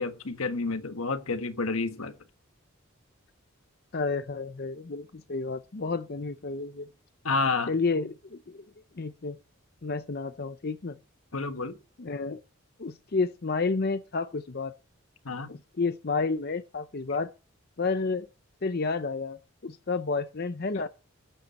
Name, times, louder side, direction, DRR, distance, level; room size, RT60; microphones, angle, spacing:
voice 1, 0.0-2.1 7.2-7.7 11.3-11.8 15.2-15.5, left 3 dB, 80° left, 1.4 m, -29 dB
voice 2, 3.9-6.9 7.7-8.6 8.9-9.4 9.8-11.0 12.0-12.4 12.8-14.7 15.5-17.3 17.8-18.3 18.6-20.9, left 4 dB, 45° left, 0.6 m, -30 dB
13.0 x 11.0 x 4.2 m
head